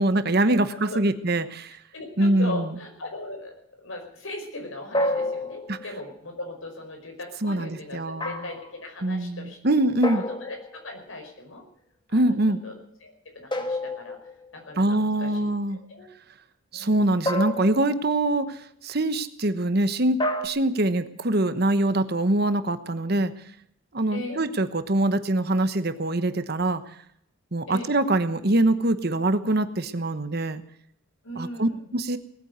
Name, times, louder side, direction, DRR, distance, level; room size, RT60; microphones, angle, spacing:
voice 1, 0.0-1.8 2.2-2.7 5.7-5.8 7.4-8.3 9.0-10.2 12.1-12.6 14.8-15.8 16.7-18.6 18.8-23.3 23.9-26.8 27.5-30.6 31.4-32.2, right 1 dB, 50° right, 11 dB, 1.1 m, -24 dB
voice 2, 1.9-9.8 10.2-11.6 12.1-12.4 12.6-15.5 15.9-16.1 16.7-17.2 24.1-24.4 27.7-27.9 31.2-31.9, left 2 dB, 75° left, 3 dB, 5.1 m, -39 dB
sound 1, 4.9-6.0 8.2-8.7 10.0-10.9 13.5-14.6 17.3-18.2 20.2-20.5, left 1 dB, 20° left, 1.5 m, -29 dB
19.0 x 9.2 x 8.1 m, 0.69 s
head